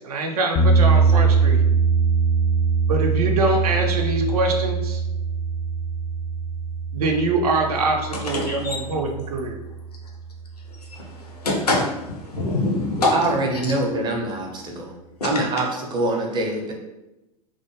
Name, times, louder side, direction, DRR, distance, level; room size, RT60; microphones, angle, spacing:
voice 1, 0.0-1.6 2.9-5.0 6.9-9.6, right 2 dB, 75° right, 3 dB, 0.5 m, -24 dB
sound 1, 0.6-10.6, right 5 dB, 25° left, 0.4 m, -22 dB
voice 2, 8.1-8.8 10.8-13.7, left 2 dB, 90° left, -1 dB, 0.7 m, -25 dB
voice 3, 13.1-14.9 15.2-16.7, right 2 dB, 25° right, 1 dB, 0.6 m, -24 dB
2.3 x 2.1 x 3.0 m, 0.98 s
figure-of-eight pair, 90°, 19 cm